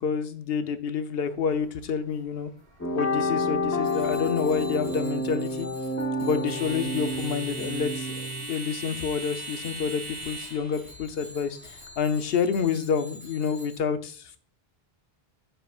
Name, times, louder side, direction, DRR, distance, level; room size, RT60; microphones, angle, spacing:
voice 1, 0.0-2.5 2.9-5.7 6.2-14.4, left 6 dB, 70° left, 10 dB, 0.9 m, -28 dB
sound 1, 1.3-12.6, right 2 dB, 85° right, 3.0 m, -42 dB
sound 2, 2.8-8.4, left 1 dB, 15° left, 0.9 m, -29 dB
Bicycle bell, 3.8-13.8, left 1 dB, 35° left, 2.6 m, -49 dB
8.6 x 5.7 x 2.4 m, 0.43 s
omnidirectional pair, 1.1 m